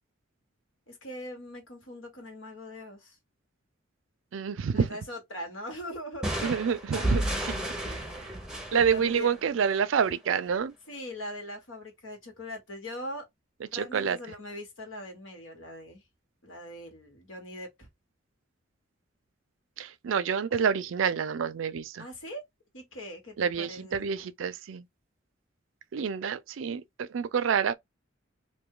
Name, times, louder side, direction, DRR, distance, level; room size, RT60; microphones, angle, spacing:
voice 1, 0.9-3.2 4.7-6.5 7.8-8.4 8.7-9.4 10.9-13.3 13.7-16.0 16.4-17.9 22.0-22.4 22.7-24.1, left 1 dB, 85° left, 1.5 m, -41 dB
voice 2, 4.3-5.0 6.4-8.3 8.7-10.7 13.7-14.2 19.8-22.1 23.4-24.8 25.9-27.7, right 6 dB, 75° right, 0.4 m, -28 dB
sound 1, 6.2-9.9, right 1 dB, 5° right, 0.7 m, -32 dB
2.6 x 2.3 x 3.7 m
head